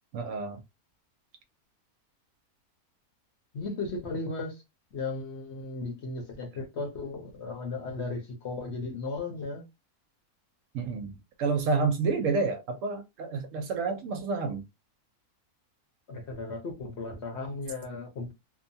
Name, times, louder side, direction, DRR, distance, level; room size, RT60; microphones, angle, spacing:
voice 1, 0.1-0.6 10.7-11.1 11.4-14.6, right 4 dB, 70° right, 0.9 m, -29 dB
voice 2, 3.5-4.6 4.9-9.6 16.1-18.3, left 3 dB, 55° left, 0.9 m, -36 dB
2.7 x 2.2 x 2.6 m
omnidirectional pair, 1.6 m